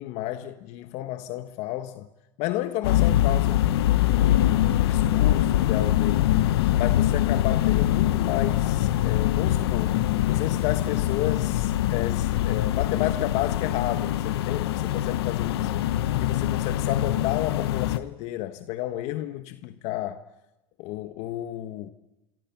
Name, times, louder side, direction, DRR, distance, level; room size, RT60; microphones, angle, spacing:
voice 1, 0.0-2.1 2.4-6.3 6.7-10.0 10.3-15.9 16.2-20.2 20.8-21.9, left 14 dB, 60° left, 1.4 m, -32 dB
sound 1, 2.8-18.0, left 13 dB, 85° left, 1.0 m, -23 dB
27.0 x 25.5 x 6.0 m
supercardioid pair, 115°, 13 cm